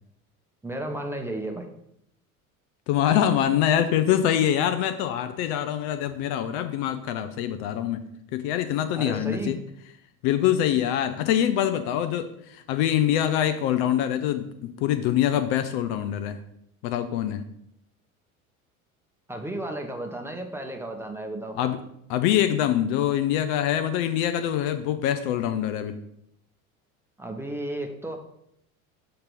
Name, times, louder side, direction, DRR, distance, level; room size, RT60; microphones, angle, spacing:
voice 1, 0.6-1.7 9.0-9.5 19.3-21.6 27.2-28.2, right 1 dB, 5° right, 2 dB, 0.8 m, -33 dB
voice 2, 2.9-8.1 8.3-9.6 10.2-16.4 16.8-17.4 21.5-21.8 22.1-26.0, left 10 dB, 50° left, 9 dB, 0.5 m, -24 dB
6.6 x 2.9 x 5.2 m, 0.75 s
figure-of-eight pair, 70°, 43 cm